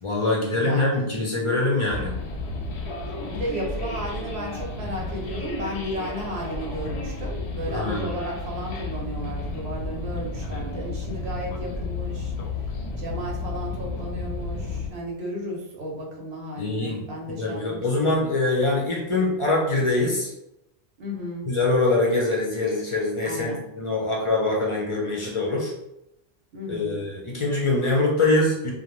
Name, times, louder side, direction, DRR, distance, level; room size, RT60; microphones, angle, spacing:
voice 1, 0.0-2.1 7.7-8.1 16.6-17.0 17.3-20.3 21.5-25.7 26.7-28.7, left 2 dB, 40° left, -2 dB, 0.4 m, -24 dB
voice 2, 0.6-1.1 3.2-12.7 13.0-18.2 21.0-21.4 23.2-23.6 26.5-27.0, equal, 80° right, -1 dB, 1.0 m, -34 dB
sound 1, 1.9-14.9, left 2 dB, 85° left, 0.8 m, -32 dB
2.4 x 2.1 x 3.0 m, 0.84 s
omnidirectional pair, 1.1 m